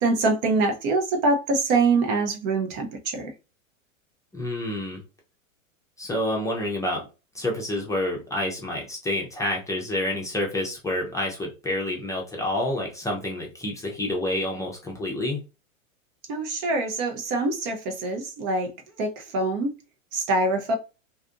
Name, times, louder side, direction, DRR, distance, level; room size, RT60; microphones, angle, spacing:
voice 1, 0.0-3.3 16.3-18.7 19.0-19.7 20.1-20.8, right 3 dB, 40° right, 0.6 m, -24 dB
voice 2, 4.3-5.0 6.0-7.1 7.3-15.4, left 1 dB, 10° left, 0.6 m, -28 dB
2.6 x 2.4 x 2.4 m
hypercardioid pair, 110°, 40 cm